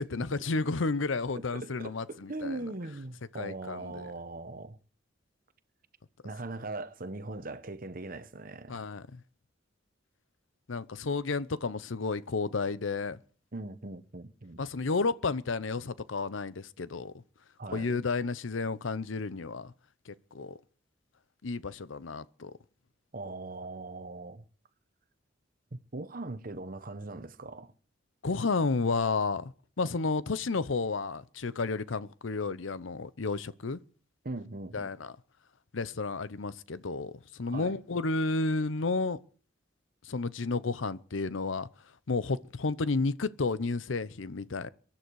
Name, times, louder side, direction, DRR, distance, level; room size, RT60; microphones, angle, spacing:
voice 1, 0.0-2.6 3.4-4.1 8.7-9.2 10.7-13.2 14.6-17.1 17.7-19.7 20.1-20.6 21.4-22.5 28.2-33.8 34.7-35.1 35.7-39.2 40.0-41.7 42.1-44.7, left 3 dB, 85° left, 0.7 m, -32 dB
voice 2, 1.5-4.8 6.2-8.9 13.5-14.6 17.6-17.9 23.1-24.4 25.7-27.7 34.2-34.9 37.5-37.8, right 2 dB, 45° right, 1.1 m, -40 dB
23.0 x 10.5 x 4.7 m
head